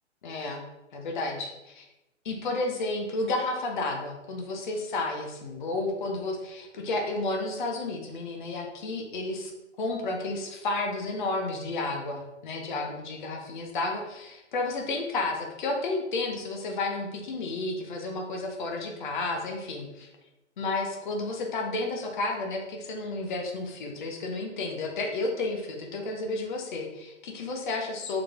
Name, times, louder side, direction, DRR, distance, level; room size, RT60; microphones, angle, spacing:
voice 1, 0.2-0.6 0.9-1.9 2.2-9.5 9.8-20.1 20.6-28.2, left 2 dB, 40° left, 2 dB, 0.6 m, -32 dB
3.6 x 3.1 x 2.3 m, 0.96 s
figure-of-eight pair, 125°, 36 cm